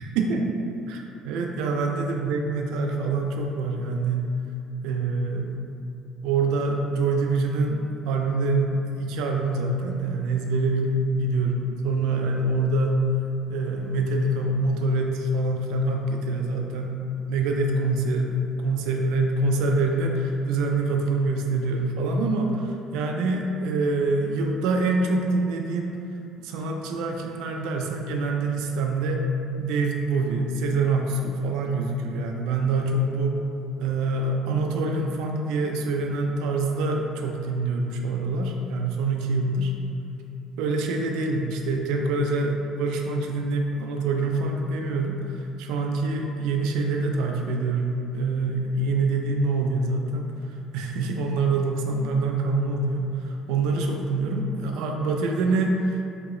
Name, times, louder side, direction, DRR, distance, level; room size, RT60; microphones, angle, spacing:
voice 1, 0.2-0.5 0.9-4.3 4.8-5.6 6.2-13.1 13.5-17.0 17.3-26.0 26.4-29.2 29.6-33.3 33.8-39.7 40.6-50.3 50.7-56.0, right 3 dB, 75° right, 2 dB, 0.3 m, -25 dB
3.1 x 2.8 x 3.6 m, 2.7 s
cardioid pair, 180°, 0 cm